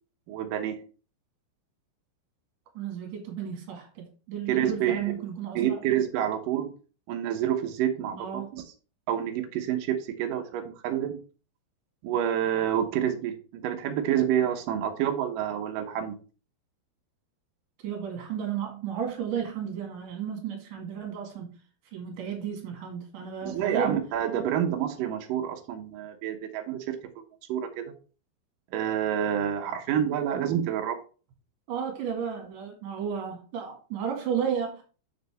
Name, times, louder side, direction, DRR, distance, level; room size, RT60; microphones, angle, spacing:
voice 1, 0.3-0.8 4.5-5.1 5.6-6.7 7.1-8.3 8.5-8.6 9.1-11.2 12.0-16.2 23.4-27.0 27.5-27.9 28.7-31.0, right 10 dB, 85° right, 1.9 m, -28 dB
voice 2, 2.7-5.8 8.2-8.5 17.8-21.5 21.9-24.0 31.7-34.8, right 8 dB, 55° right, 3.0 m, -33 dB
7.3 x 6.9 x 3.5 m
omnidirectional pair, 5.2 m